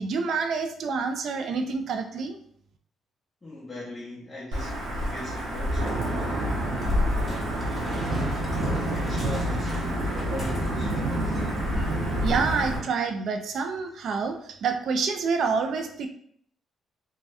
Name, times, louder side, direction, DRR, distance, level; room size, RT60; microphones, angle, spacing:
voice 1, 0.0-2.4 12.2-16.1, right 5 dB, 65° right, 6 dB, 0.4 m, -27 dB
voice 2, 3.4-6.3 7.2-11.4, left 2 dB, 20° left, -8 dB, 0.8 m, -40 dB
Wind / Thunder / Rain, 4.5-12.8, equal, 80° right, 0.9 m, -27 dB
sound 1, 6.8-11.0 11.3-11.5 11.8-12.2 12.9-13.0, equal, 5° right, 1.2 m, -47 dB
2.7 x 2.2 x 3.3 m, 0.65 s
cardioid pair, 90°, 0 cm